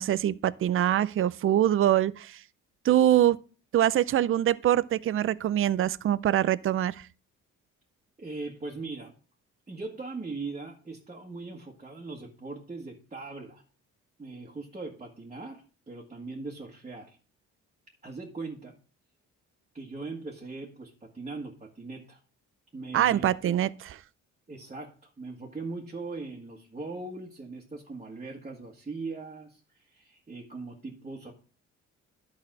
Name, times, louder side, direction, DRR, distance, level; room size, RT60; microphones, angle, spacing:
voice 1, 0.0-2.4 2.8-3.4 3.7-7.1 22.9-24.0, right 11 dB, 45° right, 0.5 m, -24 dB
voice 2, 8.2-9.1 9.7-13.6 14.2-17.2 18.0-18.8 19.7-22.2 22.7-23.3 24.5-31.3, right 3 dB, 25° right, 1.7 m, -40 dB
11.5 x 4.0 x 6.1 m
cardioid pair, 90°, 30 cm